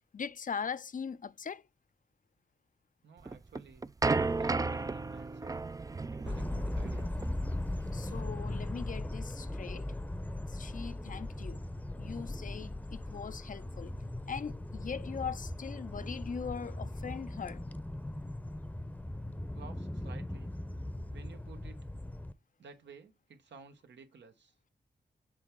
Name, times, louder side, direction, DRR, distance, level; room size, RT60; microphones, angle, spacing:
voice 1, 0.1-1.7 7.9-9.9 10.5-11.6 12.0-13.9 14.3-17.6, left 6 dB, 50° left, 0.5 m, -40 dB
voice 2, 3.0-5.6 6.1-7.2 19.5-20.5 21.1-21.8 22.6-24.5, right 5 dB, 85° right, 1.2 m, -54 dB
sound 1, 3.3-8.2, right 3 dB, 20° right, 0.4 m, -34 dB
sound 2, 6.3-22.3, left 1 dB, 10° left, 0.7 m, -39 dB
7.6 x 3.5 x 4.6 m
cardioid pair, 70°, 18 cm